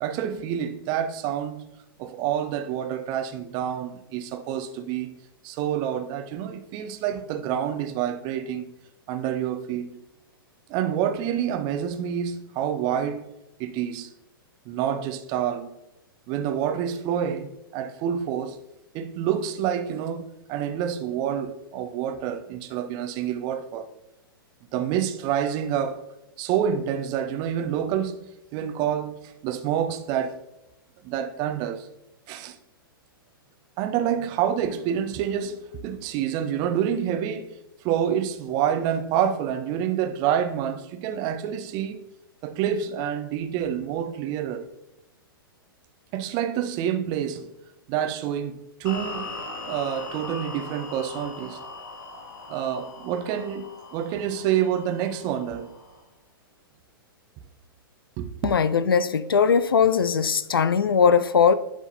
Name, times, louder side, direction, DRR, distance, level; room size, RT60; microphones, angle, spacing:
voice 1, 0.0-1.7 2.0-5.2 5.4-8.6 9.1-10.0 10.7-13.3 13.6-14.1 14.7-15.8 16.3-18.6 18.9-23.9 24.7-26.0 26.4-28.2 28.5-30.4 31.0-31.9 32.3-32.6 33.8-37.5 37.8-42.0 42.4-44.7 46.1-47.5 47.9-49.3 49.7-51.6 52.5-55.8 58.2-58.5, right 9 dB, 35° right, 0.7 m, -28 dB
sound 1, 48.9-56.0, left 3 dB, 55° left, 1.8 m, -40 dB
voice 2, 58.4-61.5, left 6 dB, 75° left, 0.5 m, -20 dB
10.5 x 3.7 x 4.2 m
figure-of-eight pair, 105°, 12 cm